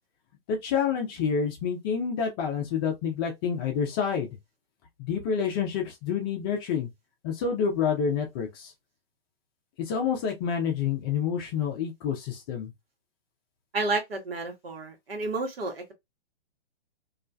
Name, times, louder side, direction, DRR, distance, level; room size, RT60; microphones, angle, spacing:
voice 1, 0.5-4.4 5.0-6.9 7.2-8.7 9.8-12.7, left 7 dB, 25° left, 0.5 m, -28 dB
voice 2, 13.7-15.9, right 2 dB, 75° right, 1.1 m, -31 dB
2.4 x 2.1 x 2.5 m
hypercardioid pair, 130°, 30 cm